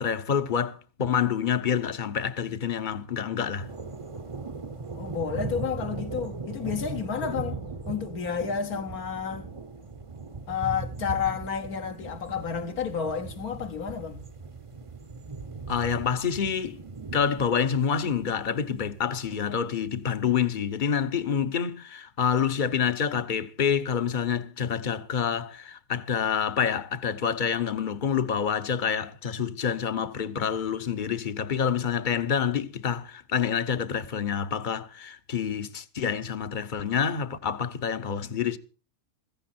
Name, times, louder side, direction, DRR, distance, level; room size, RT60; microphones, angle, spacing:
voice 1, 0.0-3.7 15.7-16.8 17.1-38.6, left 7 dB, 40° left, 0.9 m, -27 dB
sound 1, 3.6-19.7, right 3 dB, 25° right, 0.7 m, -39 dB
voice 2, 5.0-7.6 7.9-9.5 10.5-14.3, left 7 dB, 70° left, 1.5 m, -31 dB
15.5 x 14.5 x 4.4 m
omnidirectional pair, 1.7 m